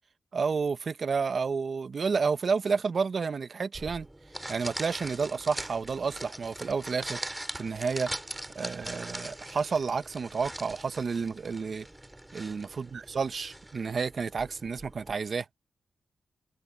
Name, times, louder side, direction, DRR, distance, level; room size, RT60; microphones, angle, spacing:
voice 1, 0.3-4.1 4.5-7.2 7.6-8.1 8.5-11.9 12.3-15.5, right 5 dB, 60° right, 1.0 m, -30 dB
sound 1, 3.7-15.1, right 1 dB, 15° right, 2.8 m, -42 dB
cardioid pair, 60°, 0 cm